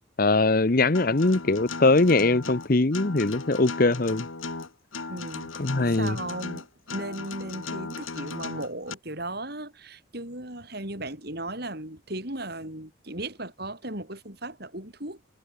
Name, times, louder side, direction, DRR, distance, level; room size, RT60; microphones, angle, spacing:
voice 1, 0.2-4.3 5.6-6.2, left 2 dB, 45° left, 0.9 m, -21 dB
Acoustic guitar, 0.9-8.9, left 4 dB, 85° left, 1.9 m, -37 dB
voice 2, 5.1-5.5 5.8-6.7 6.9-15.2, right 1 dB, 50° right, 7.0 m, -36 dB
head